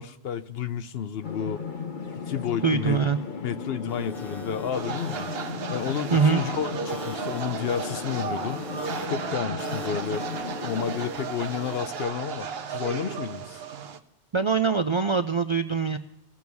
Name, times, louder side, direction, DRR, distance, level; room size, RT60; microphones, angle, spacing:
voice 1, 0.0-1.6 2.2-3.0 3.4-5.3 5.7-8.6 9.0-10.3 10.6-13.6, left 8 dB, 70° left, 12 dB, 0.9 m, -31 dB
sound 1, 1.2-11.1, left 5 dB, 50° left, 1.1 m, -36 dB
voice 2, 2.6-3.2 6.1-6.4 14.3-16.0, right 5 dB, 50° right, 9 dB, 0.3 m, -23 dB
sound 2, 3.9-12.0, left 1 dB, ahead, 1.3 m, -44 dB
sound 3, 4.7-14.0, right 6 dB, 70° right, 1.0 m, -34 dB
19.0 x 7.0 x 4.6 m, 0.87 s
omnidirectional pair, 1.1 m